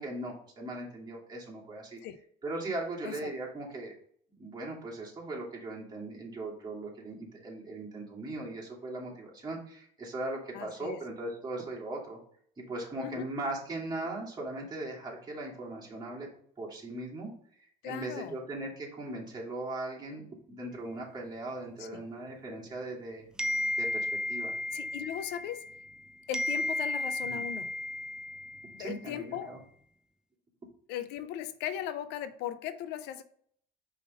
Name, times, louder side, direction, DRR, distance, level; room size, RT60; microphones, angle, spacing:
voice 1, 0.0-2.0 2.4-3.9 4.4-12.2 12.6-16.3 16.6-17.3 17.8-23.3 23.8-24.6 27.2-27.4 28.8-29.6, right 2 dB, 25° right, 2.6 m, -39 dB
voice 2, 10.5-11.0 13.0-13.3 17.8-18.4 21.8-22.0 24.7-25.6 26.3-27.7 28.7-29.5 30.9-33.2, left 11 dB, 90° left, 0.6 m, -38 dB
sound 1, 23.4-26.0 26.3-28.9, left 1 dB, 5° right, 0.4 m, -34 dB
5.4 x 3.6 x 5.4 m
cardioid pair, 110°, 17 cm